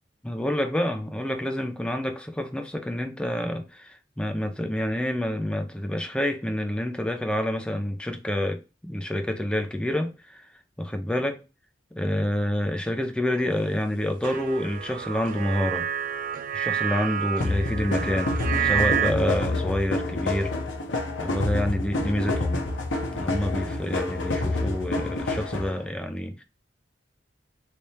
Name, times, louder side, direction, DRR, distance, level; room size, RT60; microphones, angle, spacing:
voice 1, 0.2-10.4 10.8-11.4 11.9-15.9 16.5-20.5 21.2-22.6 23.1-26.4, left 1 dB, 5° left, 0.5 m, -28 dB
sound 1, 14.2-19.1, right 9 dB, 45° right, 0.4 m, -29 dB
sound 2, 17.4-25.8, left 2 dB, 85° left, 0.8 m, -28 dB
3.4 x 3.3 x 2.8 m
head